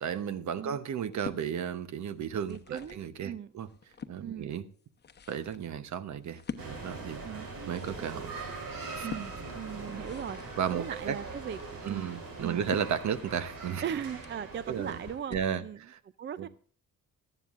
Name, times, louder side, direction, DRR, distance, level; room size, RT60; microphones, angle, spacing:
voice 1, 0.0-3.7 4.1-4.7 5.3-7.2 7.7-8.3 8.9-9.1 10.6-11.2 11.8-13.8 14.7-15.0 15.3-16.0 16.4-16.5, right 8 dB, 60° right, 1.0 m, -34 dB
sound 1, 1.0-1.4 2.2-3.1 3.6-4.2 4.8-15.6, left 6 dB, 30° left, 0.9 m, -47 dB
voice 2, 2.5-3.5 4.2-4.5 7.2-7.5 9.0-12.1 12.4-12.6 13.8-15.8 16.2-16.5, right 8 dB, 35° right, 0.4 m, -39 dB
sound 2, 6.6-15.1, right 3 dB, 85° right, 4.8 m, -42 dB
18.0 x 13.0 x 2.5 m
wide cardioid pair, 165°, 33 cm